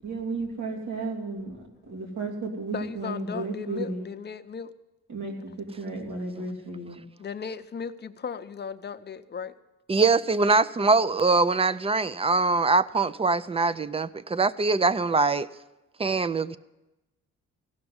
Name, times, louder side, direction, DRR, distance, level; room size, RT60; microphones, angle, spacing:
voice 1, 0.0-4.0 5.1-7.0, right 3 dB, 85° right, 3.0 m, -33 dB
voice 2, 2.7-4.7 7.2-9.5, left 6 dB, 35° left, 0.7 m, -36 dB
voice 3, 9.9-15.5 16.0-16.6, right 3 dB, 20° right, 0.4 m, -23 dB
16.0 x 5.9 x 9.5 m
cardioid pair, 90°, 30 cm